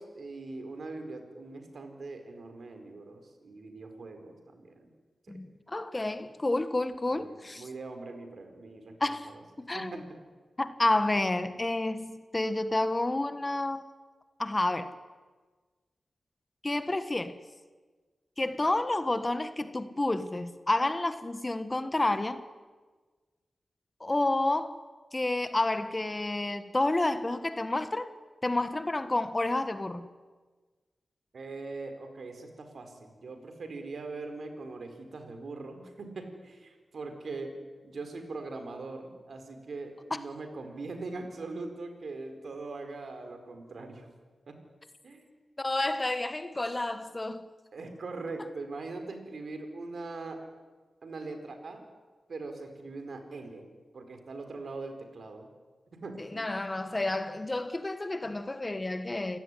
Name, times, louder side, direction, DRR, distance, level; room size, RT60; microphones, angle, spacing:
voice 1, 0.0-4.9 5.3-5.4 7.1-8.9 9.2-9.4 9.7-10.2 31.3-44.1 44.5-44.6 45.0-45.3 45.8-46.0 46.4-46.5 47.7-50.4 51.0-51.8 52.3-53.7 53.9-55.5 55.9-56.5, right 3 dB, 70° right, 4.7 m, -41 dB
voice 2, 5.3-7.7 9.0-9.3 9.6-10.0 10.6-13.8 14.4-14.9 16.6-17.4 18.4-22.4 24.0-24.8 25.1-28.1 28.4-30.1 40.1-40.2 45.6-47.5 56.2-59.4, left 2 dB, 25° left, 1.4 m, -30 dB
28.5 x 17.0 x 10.0 m
wide cardioid pair, 80°, 0 cm